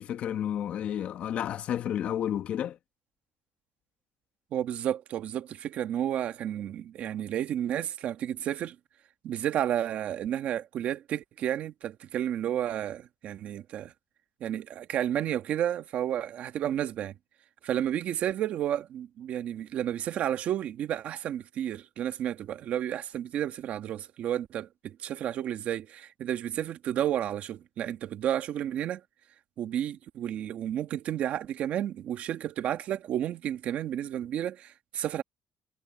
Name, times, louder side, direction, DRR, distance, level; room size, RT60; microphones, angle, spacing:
voice 1, 0.0-2.8, left 10 dB, 55° left, 1.2 m, -31 dB
voice 2, 4.5-8.7 9.2-13.9 14.4-17.1 17.6-29.0 29.6-35.2, right 10 dB, 55° right, 1.3 m, -31 dB
cardioid pair, 175°, 3 cm